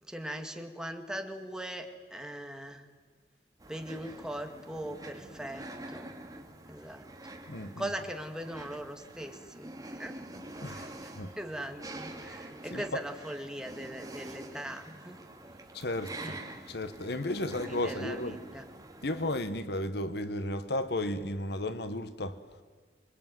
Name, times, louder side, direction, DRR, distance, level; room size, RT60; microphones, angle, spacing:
voice 1, 0.0-2.9 3.7-6.1 6.7-7.1 7.8-10.2 10.7-11.1 11.4-15.2 16.2-16.4 17.7-18.6, right 1 dB, 5° right, 2.3 m, -40 dB
sound 1, 3.6-19.4, right 1 dB, 20° right, 2.7 m, -46 dB
voice 2, 7.5-7.9 10.6-10.9 11.2-11.3 12.7-13.0 15.7-16.4 16.7-18.4 19.0-22.4, left 1 dB, 65° left, 1.4 m, -34 dB
27.0 x 23.5 x 9.4 m
head